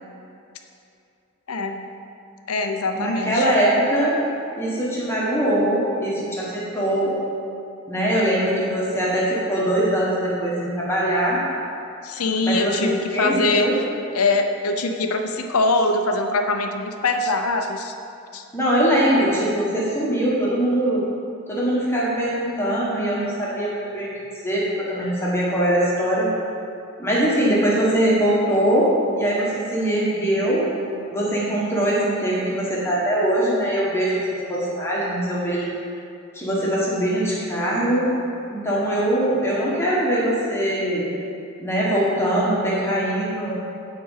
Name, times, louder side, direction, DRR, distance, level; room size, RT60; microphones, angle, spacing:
voice 1, 1.5-1.8 2.5-3.5 12.0-13.7 14.1-17.9 18.3-18.4 19.0-19.2, left 3 dB, 85° left, 6 dB, 0.7 m, -23 dB
voice 2, 2.9-4.2 4.5-7.2 7.9-11.4 12.4-13.7 18.5-21.0 21.5-26.3 27.0-28.9 29.2-30.6 31.1-35.7 36.3-38.1 38.5-41.1 41.6-43.6, right 1 dB, 10° left, -6 dB, 1.5 m, -22 dB
9.4 x 4.2 x 7.3 m, 2.6 s
head